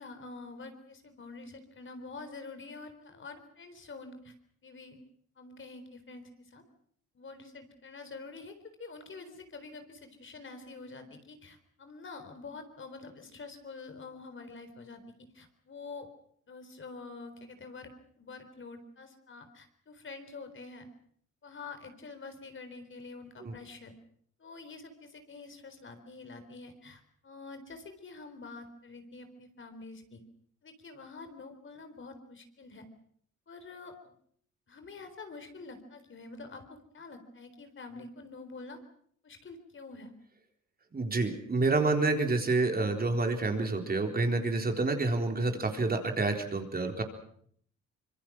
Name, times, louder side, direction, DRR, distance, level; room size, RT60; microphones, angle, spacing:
voice 1, 0.0-4.3 4.6-5.0 5.4-6.6 7.1-8.5 8.8-16.1 16.5-17.9 18.2-20.9 21.4-23.9 24.4-30.2 30.6-32.9 33.5-34.1 34.7-38.8 39.2-40.1, left 3 dB, 40° left, 8 dB, 4.1 m, -47 dB
voice 2, 40.9-47.0, right 3 dB, 30° right, 4 dB, 4.0 m, -28 dB
25.5 x 22.5 x 6.2 m, 0.63 s
cardioid pair, 90°, 30 cm